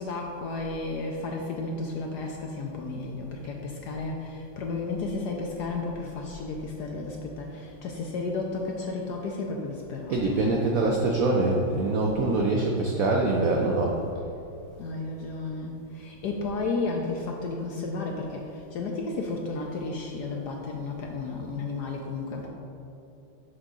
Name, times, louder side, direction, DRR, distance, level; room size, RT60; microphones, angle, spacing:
voice 1, 0.0-10.6 14.8-22.5, left 3 dB, 70° left, 1 dB, 1.0 m, -33 dB
voice 2, 10.1-13.9, right 2 dB, 75° right, -1 dB, 0.7 m, -24 dB
6.5 x 6.0 x 3.7 m, 2.8 s
omnidirectional pair, 2.2 m